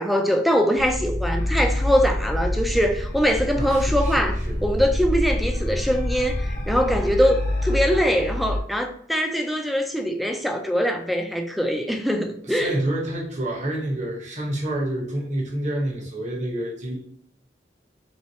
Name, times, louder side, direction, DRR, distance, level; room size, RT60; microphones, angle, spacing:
voice 1, 0.0-4.3 4.6-12.7, equal, ahead, 0.4 m, -22 dB
sound 1, 0.8-7.2, left 1 dB, 20° left, 0.8 m, -27 dB
sound 2, 1.4-8.6, left 1 dB, 60° left, 1.0 m, -31 dB
voice 2, 3.6-4.6 12.4-17.0, right 1 dB, 45° right, 1.0 m, -28 dB
3.4 x 3.1 x 2.7 m
head